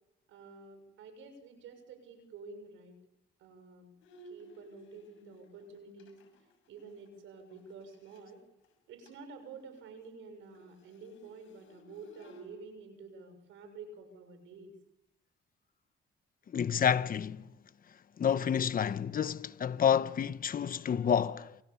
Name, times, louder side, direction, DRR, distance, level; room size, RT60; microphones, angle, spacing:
voice 1, 0.3-2.9 3.4-3.9 4.2-6.2 6.7-8.4 8.9-14.7, right 4 dB, 85° right, 6.5 m, -50 dB
Bowed string instrument, 4.0-8.3 8.6-8.7 9.0-9.3 9.6-12.5, right 1 dB, 90° left, 6.8 m, -58 dB
voice 2, 16.5-17.5 18.2-21.6, left 8 dB, 45° left, 1.1 m, -29 dB
28.5 x 26.0 x 7.2 m
cardioid pair, 90°, 20 cm